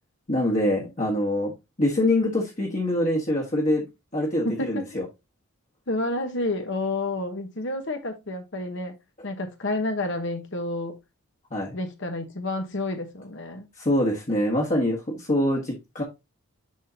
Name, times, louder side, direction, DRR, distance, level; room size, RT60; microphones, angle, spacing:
voice 1, 0.3-1.5 1.8-3.8 4.1-5.0 11.5-11.8 13.8-16.0, left 1 dB, 35° left, 1.4 m, -24 dB
voice 2, 4.4-4.9 5.9-9.0 9.2-11.0 11.7-13.7, left 2 dB, 55° left, 1.1 m, -30 dB
10.5 x 3.8 x 2.8 m
head